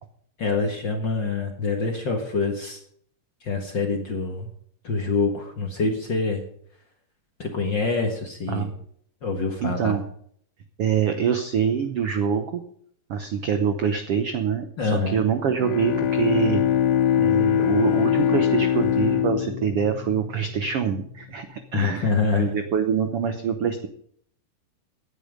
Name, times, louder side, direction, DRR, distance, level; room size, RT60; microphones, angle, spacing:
voice 1, 0.4-2.8 3.4-4.5 4.8-6.4 7.4-8.7 9.2-10.0 14.8-15.2 21.7-22.6, left 4 dB, 45° left, 2 dB, 1.6 m, -25 dB
voice 2, 9.6-10.0 10.8-12.6 13.1-16.6 17.2-23.9, right 7 dB, 75° right, 7 dB, 1.3 m, -25 dB
Bowed string instrument, 15.4-21.0, left 10 dB, 80° left, 1.4 m, -23 dB
17.0 x 9.9 x 5.2 m, 0.64 s
omnidirectional pair, 4.0 m